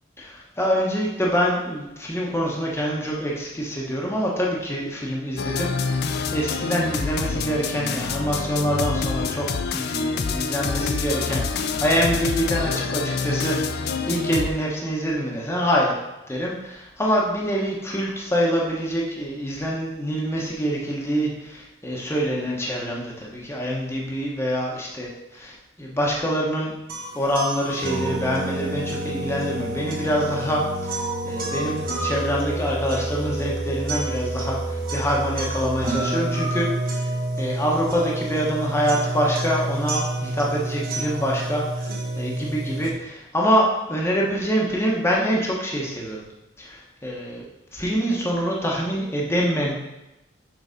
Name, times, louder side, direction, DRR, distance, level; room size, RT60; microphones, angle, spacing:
voice 1, 0.2-6.0 6.3-9.5 9.7-15.9 16.3-26.7 27.1-31.0 31.2-36.9 37.4-41.9 42.2-46.2 46.6-47.4 47.7-49.7, equal, 15° left, -3 dB, 1.0 m, -25 dB
sound 1, 5.4-14.5, left 4 dB, 55° left, 0.4 m, -27 dB
sound 2, 26.9-42.9, right 1 dB, 50° right, 1.4 m, -28 dB
6.6 x 4.0 x 5.1 m, 0.95 s
head